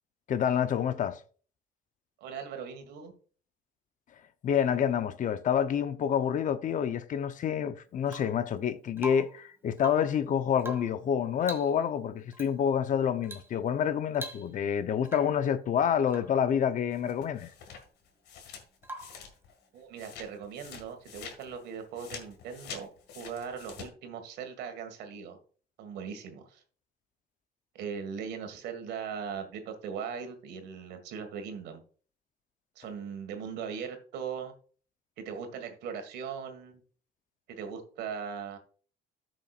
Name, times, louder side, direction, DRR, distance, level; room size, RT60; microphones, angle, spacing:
voice 1, 0.3-1.2 4.4-17.5, left 8 dB, 50° left, 0.8 m, -28 dB
voice 2, 2.2-3.1 19.7-22.9 23.1-25.4 25.8-26.6 27.7-31.8 32.8-34.5 35.2-36.8 37.5-38.6, right 6 dB, 80° right, 1.8 m, -39 dB
Rain / Water tap faucet / Drip, 8.1-8.4 9.0-9.4 9.7-10.2 10.6-11.0 11.4-11.8 12.3-12.5 13.2-13.5 13.8-13.9 14.1-14.7 15.0-15.4 16.1-16.4 18.8-19.3 21.2-21.3, right 1 dB, 15° right, 1.7 m, -43 dB
sound 1, 16.9-19.6 20.0-23.9, left 7 dB, 80° left, 2.0 m, -46 dB
13.5 x 6.2 x 2.4 m
cardioid pair, 110°, 17 cm